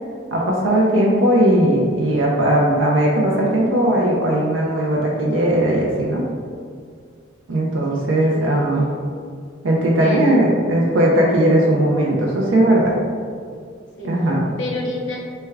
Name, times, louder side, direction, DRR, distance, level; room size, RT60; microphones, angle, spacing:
voice 1, 0.3-6.2 7.5-8.9 9.6-13.0 14.0-14.5, right 1 dB, 80° right, -3 dB, 0.5 m, -18 dB
voice 2, 7.9-8.7 9.9-10.4 14.0-14.1 14.5-15.2, left 1 dB, 65° left, -2 dB, 0.6 m, -29 dB
3.4 x 2.2 x 3.3 m, 2.1 s
head